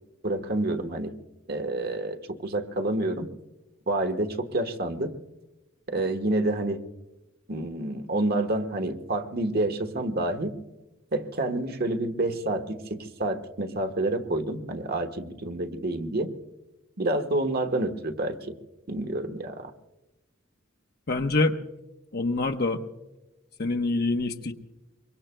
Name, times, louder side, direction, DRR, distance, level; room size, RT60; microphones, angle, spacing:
voice 1, 0.2-1.1 1.5-3.3 3.9-5.2 5.9-6.8 7.5-10.6 11.1-16.3 17.0-18.6 18.9-19.7, right 2 dB, 50° right, 6 dB, 1.3 m, -28 dB
voice 2, 21.1-21.6 22.1-22.8 23.6-24.5, left 3 dB, 50° left, 4 dB, 0.9 m, -25 dB
25.0 x 23.5 x 2.2 m, 1.0 s
head